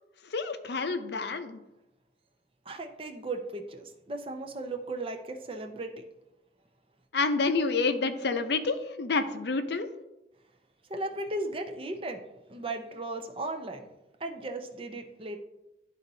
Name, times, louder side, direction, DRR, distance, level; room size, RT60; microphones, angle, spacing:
voice 1, 0.2-1.6 7.1-9.9, left 4 dB, 70° left, 8 dB, 0.6 m, -28 dB
voice 2, 2.7-5.9 10.9-13.9 14.2-15.4, right 2 dB, 30° right, 5 dB, 0.6 m, -36 dB
11.5 x 4.1 x 2.7 m, 0.93 s
head